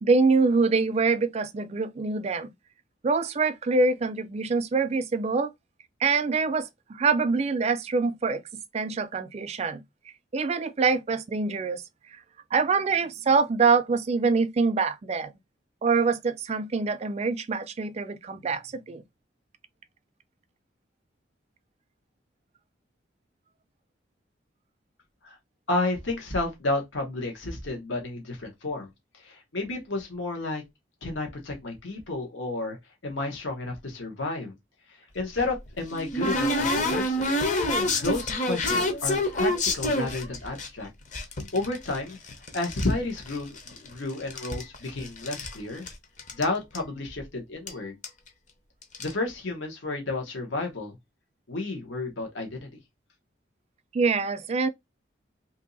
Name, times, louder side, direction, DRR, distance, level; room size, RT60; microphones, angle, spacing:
voice 1, 0.0-2.5 3.0-5.5 6.0-8.4 8.7-9.8 10.3-11.8 12.5-15.3 15.8-19.0 53.9-54.7, right 4 dB, 35° right, 0.4 m, -25 dB
voice 2, 25.7-28.9 29.1-30.6 31.0-32.8 33.0-34.5 34.9-37.4 37.9-40.9 41.5-45.9 46.3-48.0 49.0-51.0 51.5-52.8, left 2 dB, 80° left, 1.1 m, -31 dB
sound 1, 35.2-40.7 41.1-42.9 43.2-43.9 44.2-45.5 45.9-46.0 46.2-46.4 46.7-46.8 47.7-47.8 48.0-48.3 48.8-49.1, left 1 dB, 40° left, 0.7 m, -27 dB
2.8 x 2.7 x 3.9 m
head